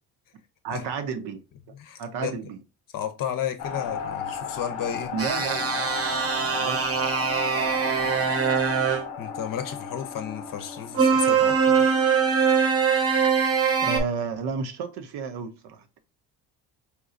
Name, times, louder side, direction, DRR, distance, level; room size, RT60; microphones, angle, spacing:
voice 1, 0.6-1.4 2.0-2.6 5.1-5.8 6.5-7.1 12.6-12.7 13.5-16.0, right 5 dB, 65° right, 0.8 m, -32 dB
voice 2, 1.8-2.3 2.9-5.1 7.5-7.6 8.2-8.4 9.2-11.9, left 9 dB, 50° left, 0.7 m, -33 dB
sound 1, 3.6-12.6, left 6 dB, 85° left, 0.7 m, -35 dB
sound 2, 5.2-9.0 10.9-14.0, right 6 dB, 35° right, 0.9 m, -22 dB
4.4 x 2.3 x 2.5 m
supercardioid pair, 65°, 43 cm